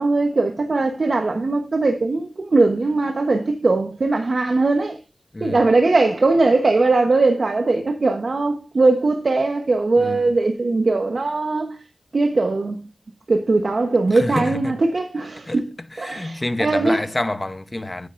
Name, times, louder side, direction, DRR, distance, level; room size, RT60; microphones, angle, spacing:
voice 1, 0.0-5.0 5.4-11.8 12.1-12.9 13.3-15.7 16.0-17.0, right 3 dB, 65° right, 1.0 m, -20 dB
voice 2, 14.1-14.8 15.5-15.6 16.0-18.1, left 2 dB, 30° left, 0.9 m, -27 dB
9.2 x 9.0 x 2.6 m
cardioid pair, 45°, 0 cm